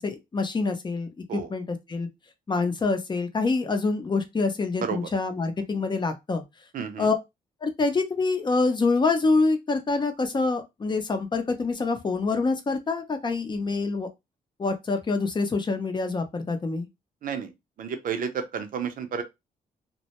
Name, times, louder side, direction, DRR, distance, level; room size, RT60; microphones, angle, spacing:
voice 1, 0.0-2.1 2.5-6.4 7.0-7.2 7.6-14.1 14.6-16.9, left 3 dB, 30° left, 0.6 m, -26 dB
voice 2, 6.7-7.1 17.2-17.5 17.8-19.2, right 7 dB, 65° right, 0.6 m, -31 dB
2.2 x 2.1 x 2.9 m
cardioid pair, 80°, 15 cm